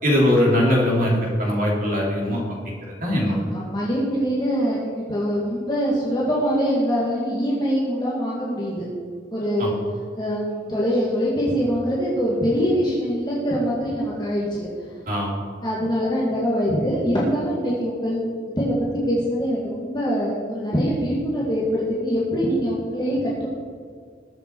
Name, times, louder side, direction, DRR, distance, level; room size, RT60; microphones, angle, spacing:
voice 1, 0.0-2.6 2.8-3.4 9.6-9.7 15.1-15.3, left 1 dB, 45° right, -3 dB, 3.3 m, -21 dB
voice 2, 3.2-8.9 9.3-9.8 10.2-14.7 15.6-18.3 18.6-23.5, equal, 25° left, -7 dB, 2.2 m, -23 dB
20.5 x 7.0 x 4.7 m, 2.1 s
head